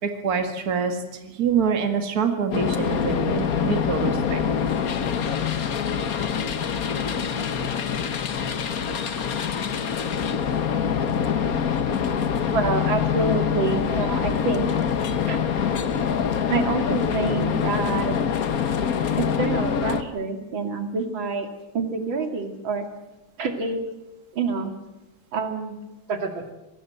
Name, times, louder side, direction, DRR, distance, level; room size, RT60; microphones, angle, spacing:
voice 1, 0.0-4.4, right 6 dB, 50° right, 5 dB, 2.4 m, -25 dB
sound 1, 2.5-20.0, left 7 dB, 50° left, 1.5 m, -25 dB
voice 2, 12.5-14.7 15.3-15.4 16.5-18.2 19.2-21.5 21.7-22.9 23.4-23.8 24.3-24.7 25.3-25.8 26.1-26.5, right 4 dB, 85° right, 5 dB, 3.1 m, -27 dB
25.5 x 19.5 x 7.9 m, 1.0 s
omnidirectional pair, 2.1 m